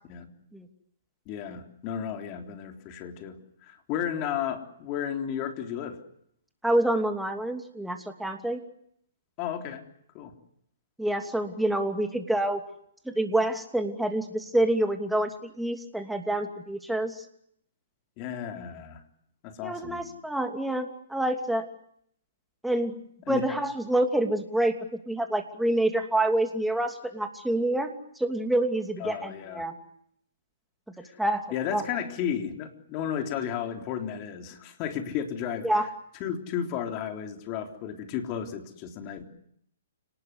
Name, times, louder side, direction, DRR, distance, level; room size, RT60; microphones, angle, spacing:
voice 1, 1.3-6.0 9.4-9.8 10.1-10.3 18.2-19.0 19.4-20.1 23.3-23.4 29.0-29.6 31.0-31.2 31.5-35.9 36.2-39.2, left 9 dB, 35° left, 5 dB, 3.8 m, -33 dB
voice 2, 6.6-8.6 11.0-12.6 13.1-17.2 19.6-21.7 22.6-23.0 23.3-27.9 28.2-29.7 31.0-31.4 31.7-31.8 35.6-35.9, right 1 dB, ahead, 5 dB, 2.8 m, -27 dB
29.5 x 19.5 x 9.7 m, 0.71 s
hypercardioid pair, 135°, 0 cm